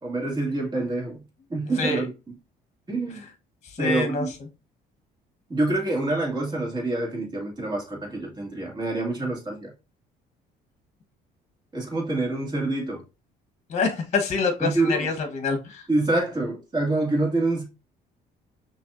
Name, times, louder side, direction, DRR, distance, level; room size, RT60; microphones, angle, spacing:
voice 1, 0.0-1.2 1.5-2.1 2.9-3.2 3.8-4.3 5.5-9.7 11.7-13.0 14.6-15.1 15.9-17.6, right 2 dB, 25° right, 2.1 m, -26 dB
voice 2, 3.7-4.3 13.7-15.8, left 4 dB, 45° left, 1.0 m, -26 dB
5.9 x 3.0 x 2.5 m
cardioid pair, 110°, 17 cm